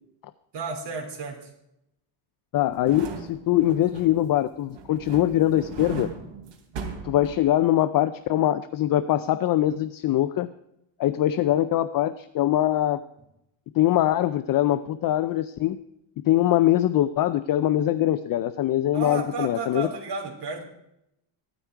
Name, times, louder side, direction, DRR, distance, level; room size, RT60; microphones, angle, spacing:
voice 1, 0.5-1.5 18.9-20.6, right 3 dB, 55° right, 0 dB, 3.9 m, -32 dB
voice 2, 2.5-6.1 7.0-10.5 11.0-13.0 13.8-15.8 16.3-19.9, left 13 dB, 45° left, 12 dB, 0.5 m, -22 dB
sound 1, 2.7-4.3 4.7-7.8 8.1-8.2, right 5 dB, 85° right, 3.1 m, -38 dB
16.0 x 13.0 x 4.6 m, 0.81 s
cardioid pair, 170°, 49 cm